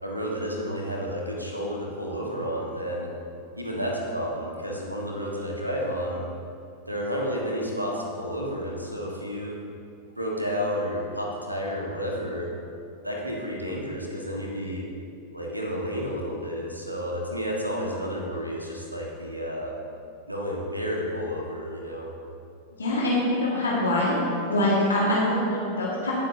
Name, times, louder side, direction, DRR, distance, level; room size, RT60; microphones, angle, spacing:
voice 1, 0.0-3.1 3.6-6.2 6.9-9.6 10.2-12.5 13.0-14.9 15.3-19.7 20.3-22.1, equal, 90° right, -2 dB, 1.6 m, -31 dB
voice 2, 22.8-24.2 24.5-26.1, left 1 dB, 70° left, -6 dB, 1.9 m, -24 dB
18.5 x 7.4 x 2.8 m, 2.7 s
figure-of-eight pair, 90°, 0 cm